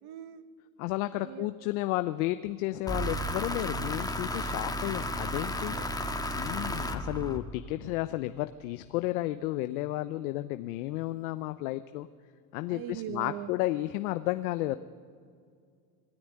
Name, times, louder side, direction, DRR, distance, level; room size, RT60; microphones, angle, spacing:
voice 1, 0.0-0.4 1.1-1.5 5.7-6.1 12.7-13.5, right 11 dB, 55° right, 10 dB, 1.5 m, -41 dB
voice 2, 0.8-5.8 6.3-12.1 12.5-14.8, left 17 dB, 75° left, 11 dB, 0.9 m, -32 dB
sound 1, 2.9-7.8, equal, 10° left, 1.7 m, -33 dB
25.5 x 16.0 x 9.8 m, 2.2 s
supercardioid pair, 105°, 43 cm